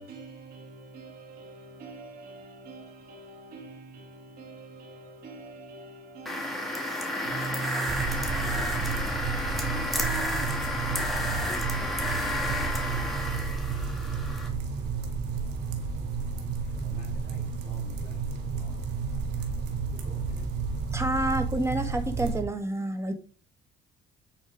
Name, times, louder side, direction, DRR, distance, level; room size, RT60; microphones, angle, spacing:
voice 1, 0.0-9.1 9.4-10.8, right 4 dB, 65° right, 1.9 m, -42 dB
sound 1, 6.3-14.5, left 1 dB, ahead, 2.3 m, -31 dB
sound 2, 7.9-22.4, right 5 dB, 90° right, 2.0 m, -32 dB
voice 2, 11.4-13.3 16.7-18.2 18.5-18.8 19.4-19.5 19.9-20.5, left 3 dB, 50° left, 4.7 m, -51 dB
voice 3, 20.9-23.2, right 1 dB, 15° right, 1.6 m, -28 dB
9.0 x 4.4 x 4.9 m
cardioid pair, 110°, 17 cm